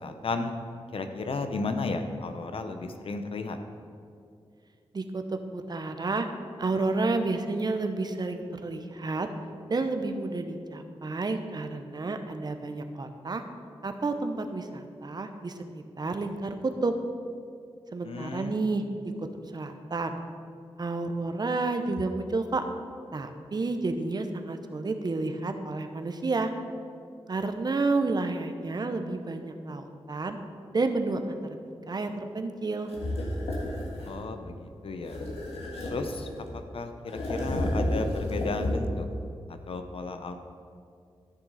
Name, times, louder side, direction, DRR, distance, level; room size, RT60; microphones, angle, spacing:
voice 1, 0.0-0.5 0.9-3.6 18.0-18.6 34.1-35.2 35.8-39.1 39.5-40.4, left 3 dB, 70° left, 7 dB, 0.8 m, -34 dB
voice 2, 4.9-6.3 6.6-9.3 9.7-13.4 13.8-16.9 17.9-18.8 19.2-19.3 19.5-20.2 20.8-22.6 23.1-26.5 27.3-30.4 30.7-31.4 31.9-32.9, right 3 dB, 45° right, 7 dB, 0.8 m, -30 dB
sound 1, 32.9-34.2 35.0-36.6 37.1-39.1, left 1 dB, 85° left, 1.7 m, -31 dB
13.5 x 6.1 x 4.1 m, 2.4 s
cardioid pair, 70°, 10 cm